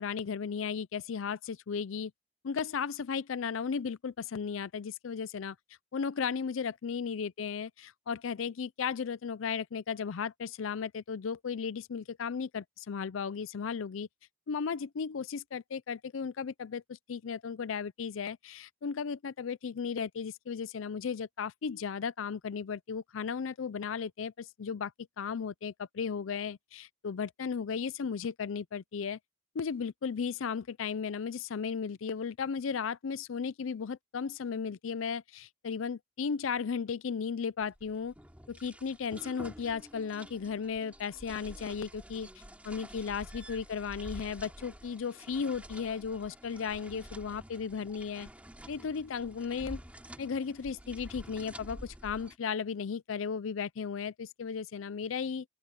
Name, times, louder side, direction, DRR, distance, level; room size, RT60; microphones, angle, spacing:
voice 1, 0.0-2.1 2.4-5.6 5.9-14.1 14.5-24.9 25.2-29.2 29.5-38.1 38.5-42.3 42.6-48.3 48.7-49.8 50.2-55.4, left 6 dB, 85° left, 0.5 m, -35 dB
sound 1, 37.6-52.4, equal, 5° right, 3.7 m, -49 dB
open air
head